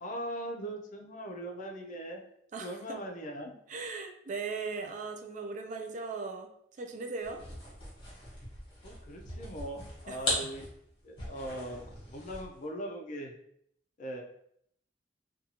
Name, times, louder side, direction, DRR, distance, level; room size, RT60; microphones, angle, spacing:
voice 1, 0.0-2.2 2.6-3.5 8.8-10.7 11.0-11.8 12.1-13.3 14.0-14.2, right 1 dB, 45° left, 2 dB, 0.4 m, -40 dB
voice 2, 2.5-3.0 3.7-6.5 6.8-7.4 10.1-10.5, right 4 dB, 45° right, 5 dB, 0.3 m, -38 dB
sound 1, 7.2-12.6, left 1 dB, 30° left, 1.0 m, -39 dB
2.6 x 2.3 x 2.8 m, 0.71 s
head